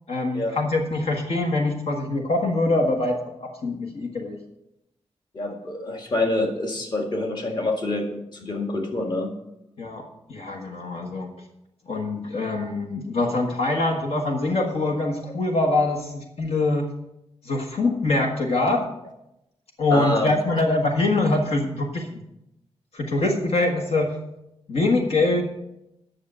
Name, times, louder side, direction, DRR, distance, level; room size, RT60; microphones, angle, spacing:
voice 1, 0.1-4.4 9.8-11.3 11.9-16.9 17.4-18.9 19.8-22.2 22.9-24.1 24.7-25.4, left 2 dB, 65° left, 2 dB, 1.5 m, -24 dB
voice 2, 5.3-9.3 19.9-20.3, left 2 dB, 40° left, 2 dB, 1.9 m, -26 dB
10.5 x 6.6 x 7.5 m, 0.85 s
wide cardioid pair, 140°, 11 cm